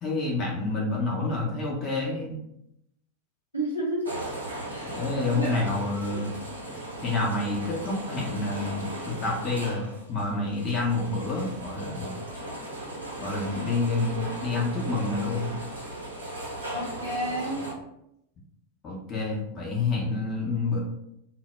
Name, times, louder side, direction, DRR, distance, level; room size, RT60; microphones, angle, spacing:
voice 1, 0.0-2.4 4.8-6.3 7.0-12.1 13.2-15.5 18.8-20.8, left 3 dB, 30° left, -3 dB, 0.6 m, -28 dB
voice 2, 3.5-4.3 4.7-5.6 16.7-17.6, right 1 dB, 85° left, -6 dB, 0.7 m, -31 dB
sound 1, 4.0-17.7, right 1 dB, 80° right, 0.6 m, -37 dB
2.0 x 2.0 x 3.2 m, 0.80 s
figure-of-eight pair, 90°, 0 cm